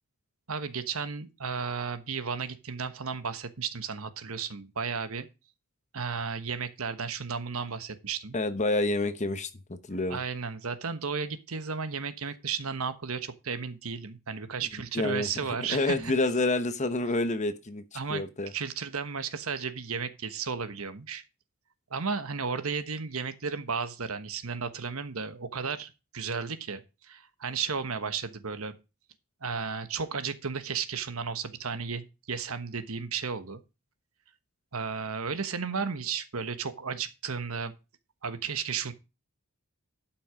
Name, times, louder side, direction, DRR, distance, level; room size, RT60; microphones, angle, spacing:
voice 1, 0.5-5.3 5.9-8.4 10.1-16.1 17.9-21.2 21.9-28.7 29.4-33.6 34.7-37.7 38.2-38.9, right 5 dB, 70° right, 1.2 m, -34 dB
voice 2, 8.3-10.2 14.9-15.3 15.6-18.5, left 2 dB, 30° left, 1.0 m, -28 dB
11.5 x 6.1 x 5.1 m
head